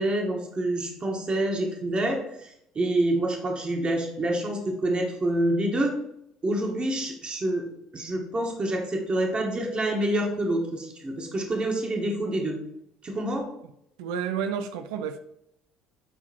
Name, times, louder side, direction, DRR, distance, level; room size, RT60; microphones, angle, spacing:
voice 1, 0.0-6.0 6.4-12.6 13.0-13.5, right 1 dB, 35° right, 1 dB, 2.1 m, -27 dB
voice 2, 14.0-15.2, right 7 dB, 75° right, 10 dB, 0.6 m, -30 dB
10.0 x 3.9 x 4.5 m, 0.76 s
hypercardioid pair, 60°, 3 cm